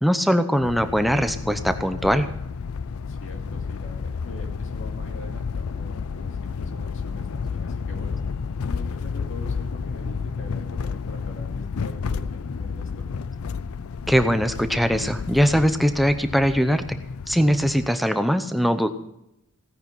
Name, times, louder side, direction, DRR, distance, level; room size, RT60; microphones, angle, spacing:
voice 1, 0.0-2.3 14.1-16.8 17.3-18.9, equal, ahead, 8 dB, 0.7 m, -21 dB
sound 1, 0.6-17.9, left 5 dB, 75° left, 0.5 m, -31 dB
voice 2, 3.1-8.2 8.7-13.0, left 2 dB, 55° left, 2 dB, 2.7 m, -42 dB
16.5 x 9.4 x 6.1 m, 0.83 s
head